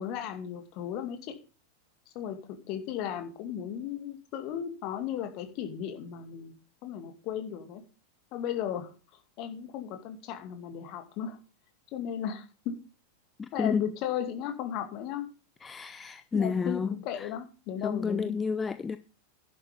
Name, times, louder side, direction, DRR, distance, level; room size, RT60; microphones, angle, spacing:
voice 1, 0.0-1.3 2.1-2.4 2.7-6.6 6.8-7.8 8.3-8.9 9.4-11.4 11.9-12.7 13.5-15.3 16.3-18.3, left 9 dB, 40° left, 2.4 m, -35 dB
voice 2, 13.4-13.9 15.6-17.3 17.8-19.0, left 5 dB, 15° left, 0.5 m, -31 dB
11.0 x 8.5 x 5.2 m
figure-of-eight pair, 90°, 0 cm